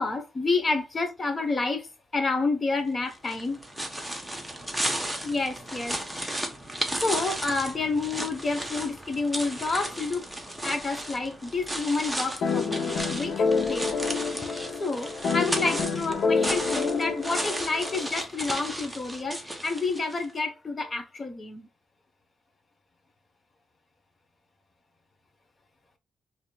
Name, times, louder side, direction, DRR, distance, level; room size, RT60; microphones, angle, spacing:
voice 1, 0.0-3.6 5.2-6.5 7.0-10.3 10.6-14.0 14.5-21.7, left 3 dB, 30° left, 0.9 m, -29 dB
sound 1, 3.1-20.3, right 1 dB, ahead, 0.8 m, -34 dB
sound 2, 12.4-18.1, left 5 dB, 70° left, 0.6 m, -28 dB
4.9 x 2.8 x 2.2 m
cardioid pair, 140°, 0 cm